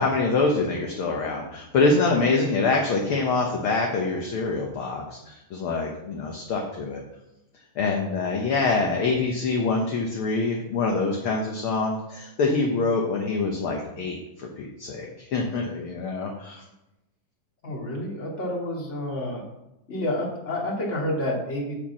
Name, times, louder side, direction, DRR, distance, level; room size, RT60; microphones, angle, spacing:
voice 1, 0.0-7.0 7.8-16.6, left 3 dB, 60° left, 1 dB, 1.5 m, -25 dB
voice 2, 17.6-19.4 19.9-21.7, left 1 dB, 25° left, -2 dB, 2.3 m, -29 dB
10.0 x 4.7 x 7.3 m, 0.91 s
omnidirectional pair, 3.4 m